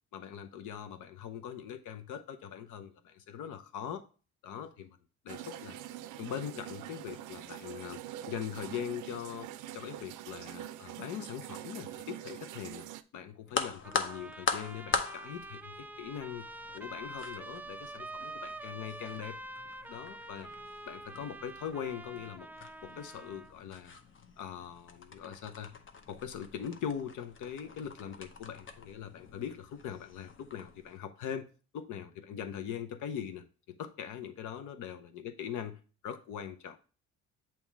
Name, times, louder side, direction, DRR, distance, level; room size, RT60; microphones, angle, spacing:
voice 1, 0.1-4.0 4.4-5.0 5.2-5.8 6.2-8.0 8.3-9.5 9.7-12.8 13.1-16.5 16.7-19.4 19.9-20.5 20.9-22.5 22.8-23.9 24.4-25.7 26.1-31.5 31.7-35.8 36.0-36.8, left 8 dB, 85° left, 0.8 m, -41 dB
sound 1, 5.3-13.0, right 12 dB, 85° right, 0.5 m, -44 dB
sound 2, 13.5-31.0, left 4 dB, 40° left, 0.8 m, -42 dB
Trumpet, 13.8-23.5, right 2 dB, 5° right, 0.3 m, -46 dB
7.2 x 3.0 x 4.6 m
cardioid pair, 90°, 30 cm